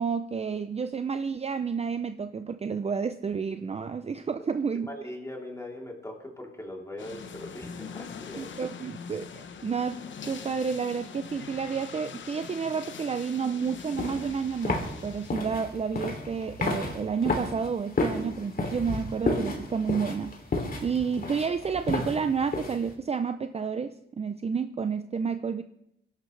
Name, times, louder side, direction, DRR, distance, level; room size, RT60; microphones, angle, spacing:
voice 1, 0.0-4.9 8.4-20.3 20.8-25.6, right 6 dB, 30° right, 9 dB, 0.5 m, -30 dB
voice 2, 4.7-8.5, left 1 dB, 15° left, -1 dB, 3.4 m, -40 dB
sound 1, 7.0-15.3, left 6 dB, 60° left, 1.0 m, -43 dB
sound 2, 13.7-22.9, left 3 dB, 45° left, 2.9 m, -32 dB
23.5 x 11.5 x 3.3 m, 0.81 s
wide cardioid pair, 115°, 21 cm